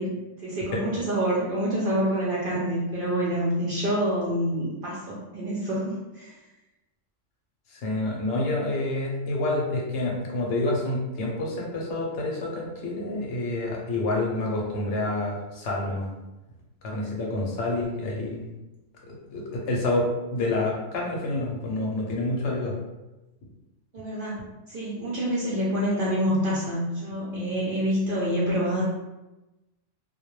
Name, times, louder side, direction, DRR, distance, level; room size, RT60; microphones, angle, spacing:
voice 1, 0.0-6.3 23.9-28.8, equal, 60° right, -6 dB, 0.6 m, -27 dB
voice 2, 7.7-16.1 16.8-18.5 19.1-22.7, left 2 dB, 70° left, -2 dB, 0.8 m, -28 dB
2.2 x 2.2 x 3.0 m, 1.0 s
omnidirectional pair, 1.3 m